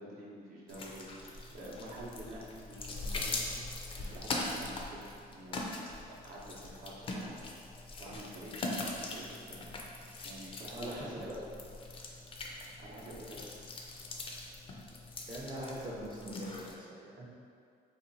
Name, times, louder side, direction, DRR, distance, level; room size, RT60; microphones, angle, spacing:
voice 1, 0.0-3.4 4.0-5.7 6.1-7.3 8.0-9.6 9.9-10.0 10.2-11.3 12.8-13.4, right 1 dB, 60° right, -4 dB, 0.7 m, -48 dB
sound 1, 0.7-16.7, left 2 dB, 30° left, 0.4 m, -41 dB
voice 2, 10.7-11.4 15.3-17.3, right 1 dB, 25° right, -5 dB, 0.5 m, -42 dB
2.8 x 2.3 x 4.0 m, 2.4 s
cardioid pair, 110°, 17 cm